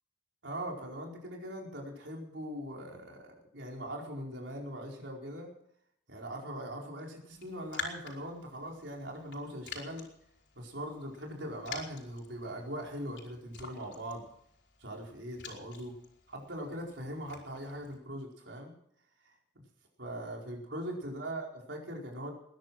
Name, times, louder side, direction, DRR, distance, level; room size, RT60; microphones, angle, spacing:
voice 1, 0.4-5.5 6.1-10.0 10.5-14.3 14.8-15.9 16.3-18.7 19.5-19.6 20.0-22.3, right 1 dB, 80° right, 0 dB, 4.7 m, -41 dB
Raindrop, 7.3-18.0, left 5 dB, 75° left, 4.3 m, -48 dB
21.0 x 11.0 x 6.1 m, 0.71 s
head